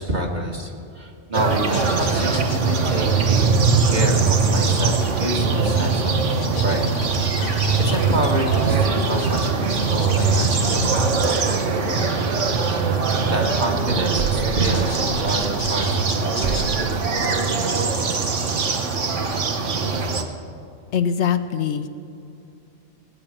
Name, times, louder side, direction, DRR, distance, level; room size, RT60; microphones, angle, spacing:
voice 1, 0.0-6.2 6.6-6.9 7.3-13.0 13.2-17.0, right 1 dB, 35° right, 0 dB, 2.0 m, -28 dB
sound 1, 1.3-20.2, right 4 dB, 80° right, 1.5 m, -21 dB
sound 2, 1.7-19.5, left 5 dB, 90° left, 1.6 m, -41 dB
sound 3, 14.0-16.1 16.4-17.1, right 6 dB, 55° right, 0.6 m, -31 dB
voice 2, 20.9-21.9, left 8 dB, 70° left, 9 dB, 1.0 m, -22 dB
18.5 x 9.2 x 7.6 m, 2.7 s
omnidirectional pair, 1.2 m